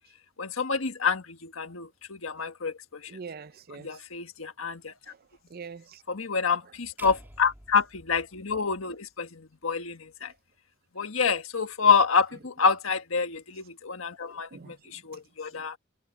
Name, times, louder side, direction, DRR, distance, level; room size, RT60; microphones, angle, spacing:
voice 1, 0.4-3.2 3.7-5.1 6.1-10.3 10.9-15.8, left 5 dB, 80° left, 1.6 m, -28 dB
voice 2, 3.1-4.0 5.1-5.2 5.5-6.0 14.3-15.2 15.5-15.6, right 5 dB, 45° right, 0.5 m, -44 dB
sound 1, 7.0-9.2, right 1 dB, 10° right, 2.4 m, -50 dB
head